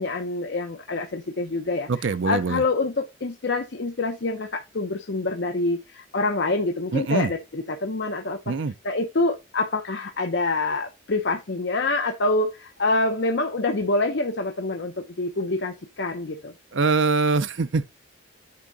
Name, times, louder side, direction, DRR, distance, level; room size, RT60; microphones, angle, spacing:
voice 1, 0.0-8.5 8.8-16.5, left 2 dB, 55° left, 0.7 m, -26 dB
voice 2, 1.9-2.6 6.9-7.3 8.5-8.7 16.7-17.9, right 4 dB, 65° right, 0.6 m, -23 dB
8.6 x 3.6 x 4.0 m
head